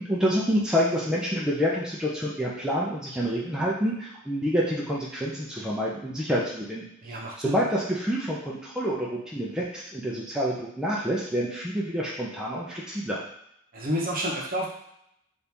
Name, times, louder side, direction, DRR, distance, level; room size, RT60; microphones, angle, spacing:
voice 1, 0.0-13.2, equal, 5° right, -5 dB, 0.5 m, -28 dB
voice 2, 7.0-7.6 13.7-14.7, equal, 45° right, -2 dB, 0.8 m, -29 dB
4.3 x 2.6 x 3.4 m, 0.76 s
head